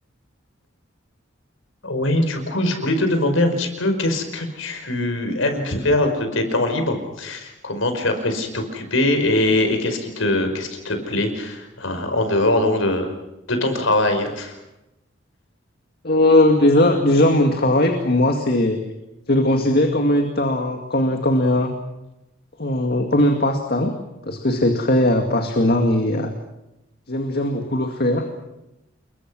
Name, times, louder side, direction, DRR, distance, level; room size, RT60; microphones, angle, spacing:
voice 1, 1.8-13.1 13.5-14.5, left 1 dB, 90° left, 6 dB, 5.2 m, -22 dB
voice 2, 16.0-18.8 19.3-21.7 22.6-23.9 24.2-26.3 27.1-28.3, left 1 dB, 50° left, 4 dB, 2.2 m, -19 dB
28.5 x 22.5 x 6.3 m, 0.93 s
head